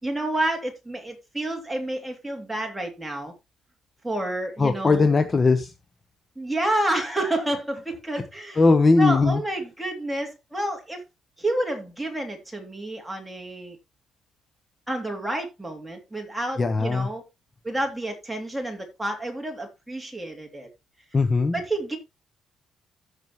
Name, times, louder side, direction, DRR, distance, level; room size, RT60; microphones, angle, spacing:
voice 1, 0.0-3.3 4.0-5.1 6.4-8.7 9.0-11.0 11.4-13.8 14.9-17.2 17.6-20.7 21.5-22.0, right 1 dB, 5° right, 2.9 m, -29 dB
voice 2, 4.6-5.7 8.6-9.4 16.6-17.1 21.1-21.6, left 3 dB, 25° left, 0.9 m, -19 dB
14.5 x 6.3 x 3.1 m
cardioid pair, 130°, 0 cm